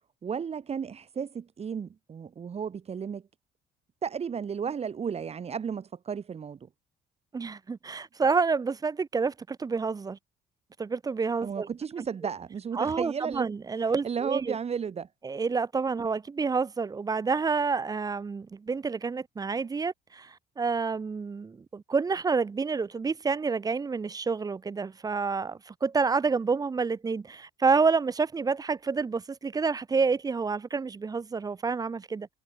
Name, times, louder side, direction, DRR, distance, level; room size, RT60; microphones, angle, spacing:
voice 1, 0.2-3.2 4.0-6.7 11.4-13.5 14.0-15.1, right 7 dB, 35° right, 2.8 m, -33 dB
voice 2, 7.3-10.2 10.8-11.7 12.7-14.5 15.2-32.3, right 4 dB, 20° right, 0.7 m, -28 dB
cardioid pair, 110°, 17 cm